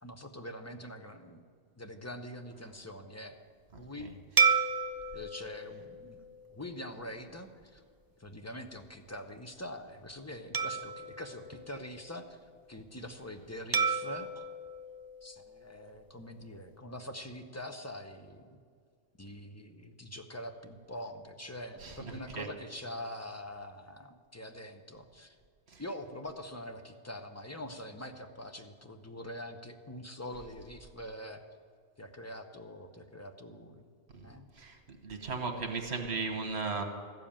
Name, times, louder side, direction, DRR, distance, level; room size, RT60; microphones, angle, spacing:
voice 1, 0.0-1.4 1.8-3.4 3.8-4.1 5.1-6.2 6.5-7.8 8.2-12.4 12.7-14.5 15.2-18.6 19.2-25.4 25.8-31.4 32.0-33.9 34.2-34.5, left 1 dB, 15° left, 6 dB, 0.7 m, -44 dB
sound 1, 4.4-7.0 7.6-7.8 10.5-12.3 13.7-16.0, right 5 dB, 35° right, 0.3 m, -32 dB
voice 2, 21.8-22.5 25.7-25.8 34.2-34.3 34.6-34.8 35.0-36.8, right 4 dB, 75° right, 4 dB, 1.5 m, -36 dB
13.5 x 7.4 x 8.7 m, 2.1 s
omnidirectional pair, 1.1 m